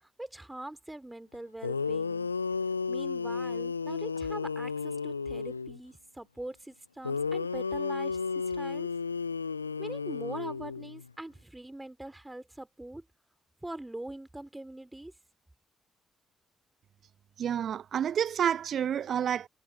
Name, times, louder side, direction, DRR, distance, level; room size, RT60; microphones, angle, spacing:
voice 1, 0.2-2.3 2.9-8.2 8.5-8.9 9.8-13.0 13.6-15.1, right 1 dB, 10° right, 3.5 m, -42 dB
sound 1, 1.3-1.4 1.6-5.8 7.0-11.1, left 5 dB, 90° left, 0.6 m, -33 dB
voice 2, 17.4-19.5, right 9 dB, 55° right, 0.4 m, -29 dB
figure-of-eight pair, 40°, 0 cm